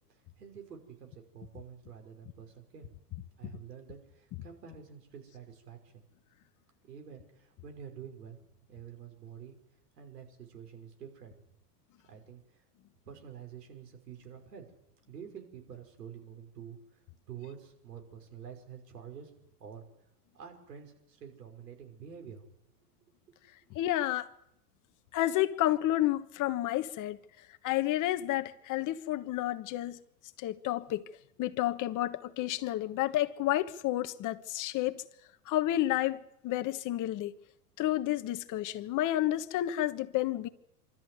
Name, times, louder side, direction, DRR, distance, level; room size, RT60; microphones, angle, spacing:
voice 1, 0.1-2.9 3.4-6.0 6.9-8.4 8.7-9.6 10.0-11.3 12.1-12.6 13.1-14.7 15.1-17.0 17.3-19.8 20.3-22.4 23.3-23.4, right 8 dB, 85° right, 5.9 m, -48 dB
voice 2, 23.7-24.3 25.1-27.2 27.6-30.0 30.4-31.0 31.4-35.0 35.5-37.3 37.8-40.5, left 14 dB, 40° left, 1.4 m, -30 dB
26.0 x 13.5 x 9.5 m
hypercardioid pair, 100°, 47 cm